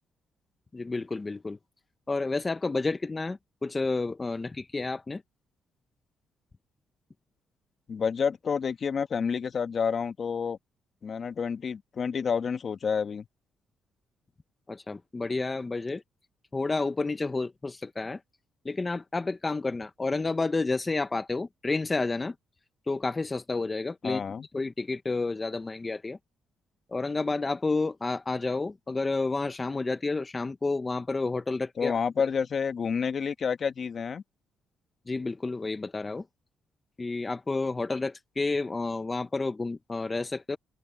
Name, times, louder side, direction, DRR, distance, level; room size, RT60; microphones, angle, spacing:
voice 1, 0.7-1.6 2.1-5.2 14.7-16.0 16.5-18.2 18.6-22.3 22.9-24.2 24.5-26.2 26.9-31.9 35.1-36.2 37.0-40.6, left 3 dB, 25° left, 0.9 m, -30 dB
voice 2, 7.9-10.6 11.0-13.2 24.0-24.5 31.8-34.2, left 6 dB, 45° left, 1.2 m, -29 dB
cardioid pair, 90°, 0 cm